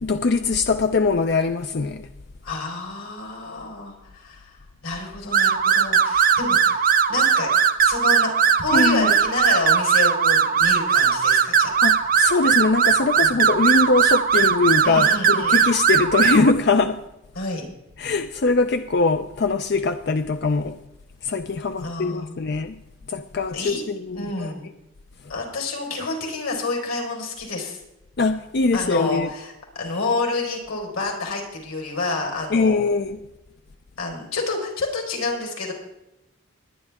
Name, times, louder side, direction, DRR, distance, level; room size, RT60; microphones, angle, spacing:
voice 1, 0.0-2.1 8.7-9.1 11.8-15.1 15.4-17.0 18.0-20.8 21.2-22.8 23.1-24.5 28.2-29.3 32.5-33.2, left 3 dB, 50° left, 0.5 m, -22 dB
voice 2, 2.4-4.5 4.8-7.5 7.8-8.3 8.6-11.7 13.2-13.3 14.8-15.6 17.3-17.6 21.8-22.4 23.5-23.9 24.1-24.7 25.3-27.8 28.7-32.8 34.0-35.7, left 3 dB, 90° left, 4.3 m, -28 dB
sound 1, 5.3-16.5, right 7 dB, 40° right, 0.7 m, -19 dB
21.0 x 9.9 x 3.6 m
head